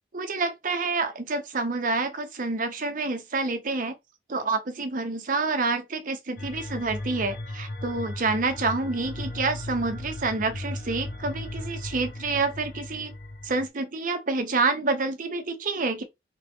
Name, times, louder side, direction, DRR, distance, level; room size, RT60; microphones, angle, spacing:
voice 1, 0.1-4.0 4.3-13.1 13.4-16.0, right 3 dB, 50° right, 0.8 m, -28 dB
sound 1, 6.4-13.7, left 1 dB, 60° left, 1.1 m, -36 dB
3.5 x 2.9 x 3.4 m
head